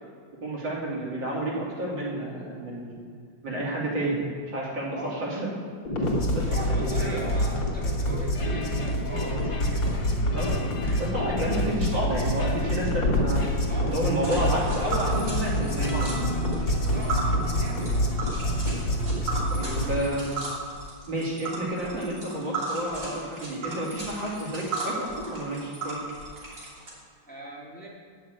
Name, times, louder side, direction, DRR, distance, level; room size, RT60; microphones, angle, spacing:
voice 1, 0.4-3.0 3.4-4.3 4.5-5.5 6.3-7.2 10.3-16.3 19.5-20.3 21.1-26.0, right 1 dB, 80° right, -5 dB, 3.5 m, -30 dB
sound 1, 5.9-20.0, equal, 85° left, 2.4 m, -27 dB
sound 2, 6.0-19.5, equal, 50° left, 0.3 m, -36 dB
voice 2, 6.5-10.0 13.7-14.5 16.9-17.2 17.6-17.9 27.3-27.9, right 1 dB, 5° left, -5 dB, 2.0 m, -39 dB
Tick, 14.2-26.9, right 3 dB, 40° right, 3.2 m, -35 dB
9.8 x 6.7 x 8.1 m, 2.2 s
omnidirectional pair, 2.0 m